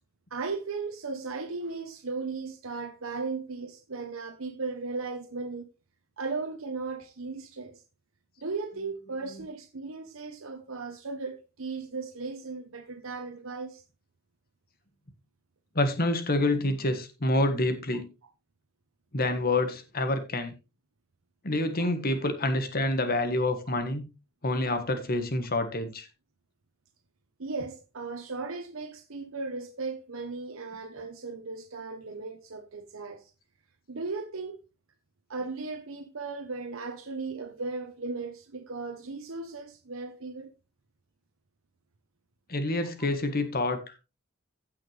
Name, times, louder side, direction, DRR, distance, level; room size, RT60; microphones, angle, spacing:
voice 1, 0.3-5.7 6.2-7.8 8.4-13.8 19.5-19.6 21.8-21.9 23.7-23.8 27.4-33.3 33.9-34.6 35.3-40.5, right 4 dB, 85° right, 1.1 m, -36 dB
voice 2, 15.7-18.1 19.1-20.5 21.4-24.1 24.4-26.1 42.5-44.0, left 2 dB, 45° left, 1.6 m, -27 dB
16.0 x 5.7 x 3.4 m
head